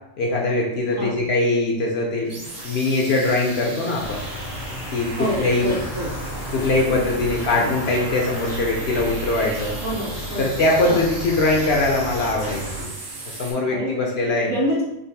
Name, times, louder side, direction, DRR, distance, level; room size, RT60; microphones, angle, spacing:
voice 1, 0.2-4.2 4.9-5.1 5.4-5.7 6.5-9.8 10.4-12.9 13.3-14.5, left 2 dB, 65° left, -1 dB, 0.7 m, -22 dB
sound 1, 2.2-13.5, right 2 dB, 70° right, 1.3 m, -37 dB
sound 2, 4.0-12.8, equal, 80° left, 1.4 m, -33 dB
voice 2, 5.1-6.1 7.5-7.7 9.8-10.6 10.9-11.4 13.7-14.0 14.4-14.8, equal, 50° right, -4 dB, 0.7 m, -27 dB
3.7 x 2.4 x 2.7 m, 0.88 s
omnidirectional pair, 1.4 m